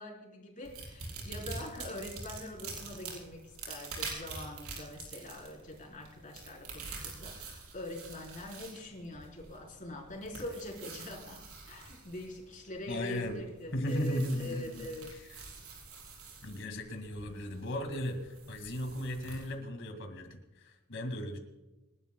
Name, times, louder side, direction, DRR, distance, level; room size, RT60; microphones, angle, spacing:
voice 1, 0.0-11.4 11.7-15.1, left 1 dB, 35° left, -1 dB, 4.0 m, -43 dB
sound 1, 0.6-19.5, right 4 dB, 75° right, 5.0 m, -46 dB
voice 2, 12.9-13.4 13.7-15.4 16.4-21.4, left 1 dB, 60° left, 5 dB, 2.1 m, -36 dB
26.5 x 12.0 x 2.2 m, 1.0 s
head